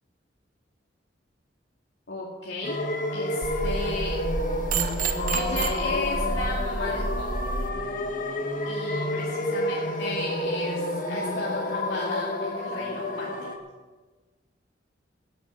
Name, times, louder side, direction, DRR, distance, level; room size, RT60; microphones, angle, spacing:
voice 1, 2.1-2.8 3.1-4.2 5.3-7.4 8.7-13.3, left 2 dB, 75° left, -4 dB, 2.3 m, -34 dB
sound 1, 2.6-13.6, left 1 dB, 45° left, 1.5 m, -30 dB
sound 2, 3.4-7.7, right 3 dB, 45° right, 1.1 m, -30 dB
17.0 x 7.9 x 6.5 m, 1.3 s
head